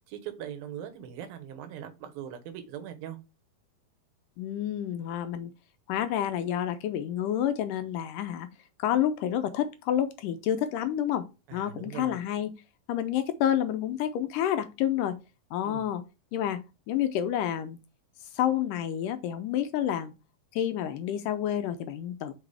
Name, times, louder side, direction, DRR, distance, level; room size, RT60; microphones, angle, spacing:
voice 1, 0.1-3.2 11.5-12.2 15.6-15.9, right 9 dB, 85° right, 2.9 m, -40 dB
voice 2, 4.4-5.5 5.9-8.5 8.8-11.3 11.5-12.5 12.9-15.2 15.5-16.0 16.3-16.6 16.9-17.8 18.3-20.1 20.5-22.3, left 10 dB, 80° left, 2.0 m, -29 dB
5.9 x 5.5 x 3.3 m
omnidirectional pair, 4.1 m